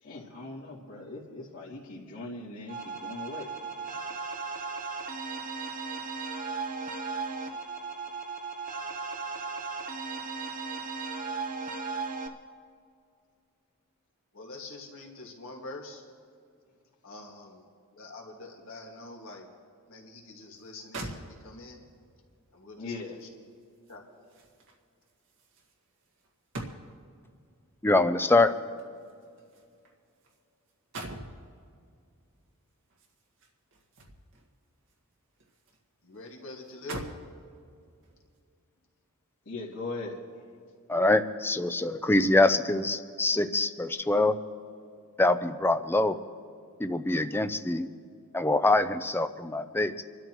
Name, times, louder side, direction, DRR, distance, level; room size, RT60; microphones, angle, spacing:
voice 1, 0.0-3.5 22.8-23.2 39.4-40.2, left 3 dB, 85° left, -10 dB, 2.8 m, -39 dB
sound 1, 2.7-12.3, right 4 dB, 40° right, 1.0 m, -36 dB
voice 2, 14.3-16.0 17.0-19.5 19.9-21.8 22.5-23.3 23.9-24.1 36.0-37.1, left 2 dB, 60° left, 0 dB, 2.0 m, -45 dB
sound 2, 20.6-20.7 20.9-21.8 23.2-27.2 28.3-30.4 30.7-31.4 32.9-34.5 34.9-35.8 36.1-36.2 36.7-37.3 38.0-38.2, right 2 dB, 60° right, 1.7 m, -44 dB
voice 3, 27.8-28.5 40.9-44.4 45.2-46.2 46.8-47.9 48.3-50.0, left 2 dB, 10° left, 10 dB, 0.5 m, -24 dB
26.5 x 12.5 x 3.1 m, 2.3 s
head